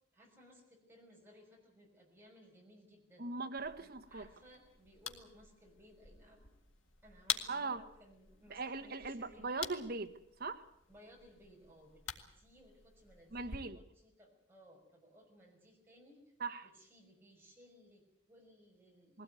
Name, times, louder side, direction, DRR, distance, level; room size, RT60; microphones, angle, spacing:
voice 1, 0.1-3.3 3.8-6.5 7.0-9.6 10.9-12.0 12.3-16.3 16.6-19.2, equal, 10° right, 5.8 m, -61 dB
voice 2, 3.2-4.3 7.5-7.8 8.5-10.1 10.4-10.6 13.3-13.8 16.4-16.7 19.1-19.2, right 3 dB, 50° right, 1.3 m, -40 dB
sound 1, 3.6-13.6, left 8 dB, 90° left, 2.0 m, -47 dB
21.0 x 16.5 x 9.3 m
head